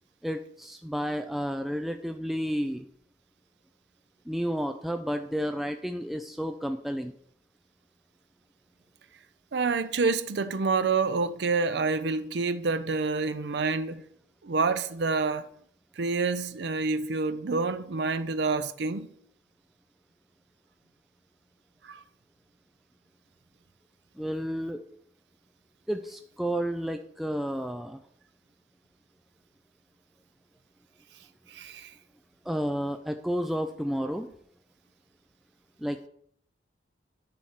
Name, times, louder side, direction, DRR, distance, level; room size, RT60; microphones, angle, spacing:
voice 1, 0.2-2.9 4.3-7.1 24.2-24.8 25.9-28.0 32.5-34.3 35.8-36.1, equal, ahead, 0.4 m, -31 dB
voice 2, 9.5-14.0 14.4-15.5 16.0-19.1 21.8-22.0 31.5-31.9, right 4 dB, 70° right, 0.5 m, -28 dB
10.5 x 4.3 x 6.5 m
head